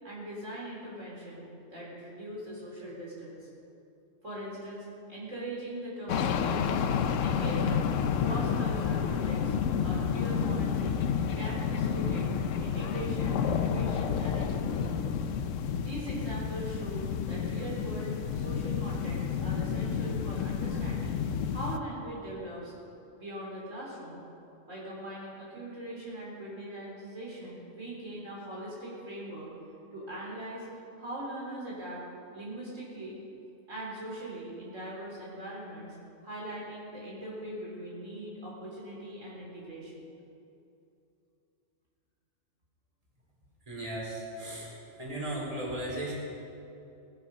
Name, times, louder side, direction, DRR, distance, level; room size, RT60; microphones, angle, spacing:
voice 1, 0.0-3.5 4.2-6.6 7.2-7.9 8.2-9.6 9.8-11.0 11.3-12.3 12.6-15.0 15.8-22.7 23.2-24.2 24.7-29.5 29.9-32.1 32.3-33.2 33.7-36.0 36.2-40.1, right 1 dB, 80° right, -5 dB, 4.5 m, -41 dB
sound 1, 6.1-21.8, left 7 dB, 80° left, 1.0 m, -30 dB
voice 2, 43.7-44.7 45.0-46.1, right 1 dB, 30° right, -4 dB, 3.5 m, -36 dB
18.5 x 12.0 x 5.5 m, 2.7 s
omnidirectional pair, 1.3 m